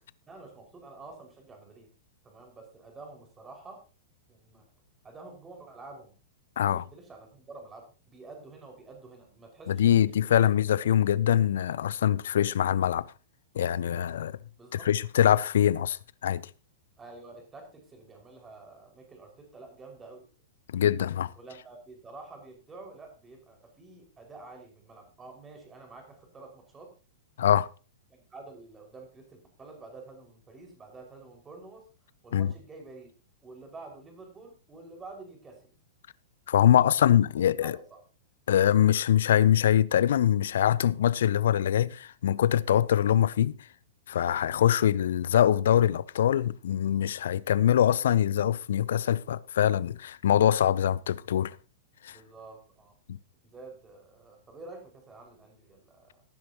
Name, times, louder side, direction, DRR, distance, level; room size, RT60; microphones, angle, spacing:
voice 1, 0.3-1.9 2.2-3.8 4.3-4.6 5.0-6.1 6.6-10.5 14.6-14.9 17.0-20.3 21.4-26.9 28.3-31.9 32.2-33.1 33.4-35.7 36.7-37.2 37.6-38.0 44.4-44.7 52.1-53.0 53.4-56.2, right 3 dB, 15° right, 5.4 m, -49 dB
voice 2, 9.7-13.1 13.5-14.4 14.8-16.5 20.7-21.3 27.4-27.7 32.3-32.5 36.5-37.8 38.5-43.6 44.1-51.6 52.0-52.2 53.1-53.2, left 10 dB, 65° left, 0.5 m, -23 dB
18.0 x 10.5 x 2.9 m
figure-of-eight pair, 105°, 0 cm